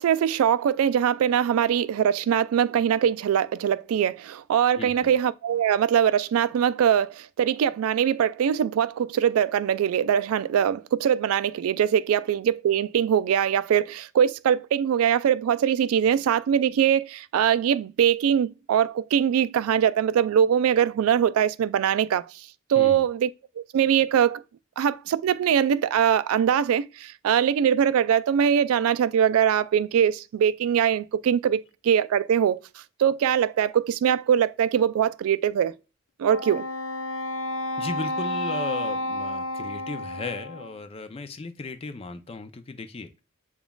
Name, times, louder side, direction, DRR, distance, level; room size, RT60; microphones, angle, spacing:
voice 1, 0.0-22.2 22.7-23.3 23.7-24.4 24.8-32.6 33.0-35.7 36.2-36.7, right 8 dB, 90° right, 0.3 m, -22 dB
voice 2, 4.8-5.1 22.7-23.1 37.8-43.1, left 3 dB, 25° left, 0.4 m, -36 dB
Wind instrument woodwind instrument, 36.2-40.8, left 1 dB, 85° left, 0.6 m, -31 dB
7.0 x 2.3 x 2.2 m
head